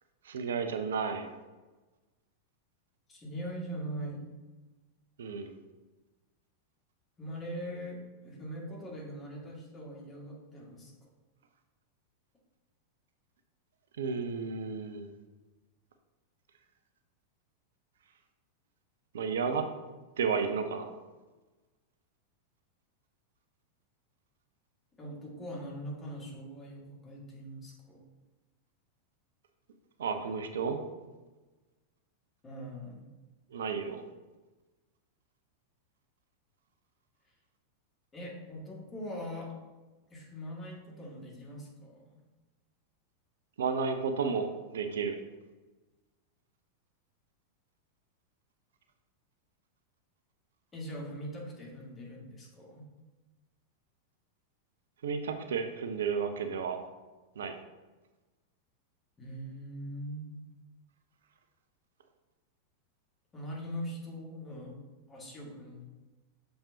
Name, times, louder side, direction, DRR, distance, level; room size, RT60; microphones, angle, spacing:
voice 1, 0.2-1.3 5.2-5.5 14.0-15.2 19.1-19.7 20.2-20.9 30.0-30.8 33.5-34.0 43.6-45.2 55.0-56.8 57.4-57.5, right 5 dB, 65° right, 7 dB, 0.6 m, -32 dB
voice 2, 3.1-4.3 7.2-10.9 25.0-28.0 32.4-33.1 38.1-39.5 40.1-42.2 50.7-52.9 59.2-60.3 63.3-64.8 65.1-65.8, equal, 20° left, -3 dB, 2.0 m, -41 dB
6.7 x 5.5 x 2.8 m, 1.2 s
figure-of-eight pair, 90°, 0 cm